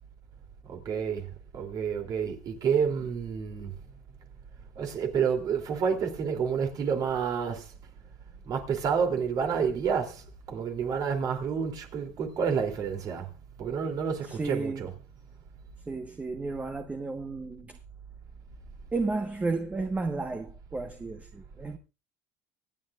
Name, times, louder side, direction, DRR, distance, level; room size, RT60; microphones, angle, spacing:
voice 1, 0.6-3.7 4.7-7.7 8.4-13.3 13.6-14.9, right 6 dB, 50° right, 3.0 m, -29 dB
voice 2, 14.2-14.9 15.9-17.8 18.9-21.8, right 3 dB, 15° right, 1.2 m, -33 dB
25.5 x 8.9 x 2.5 m
supercardioid pair, 110°, 9 cm